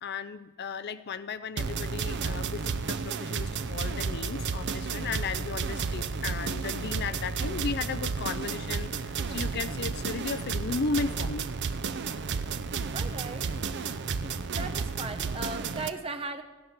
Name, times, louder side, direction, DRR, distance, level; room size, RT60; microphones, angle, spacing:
voice 1, 0.0-11.5, left 5 dB, 50° left, 13 dB, 0.5 m, -35 dB
sound 1, 1.6-15.9, right 5 dB, 50° right, 0.6 m, -32 dB
voice 2, 12.9-13.5 14.5-16.4, right 3 dB, 25° right, 6 dB, 1.0 m, -37 dB
16.0 x 9.7 x 5.8 m, 1.3 s
head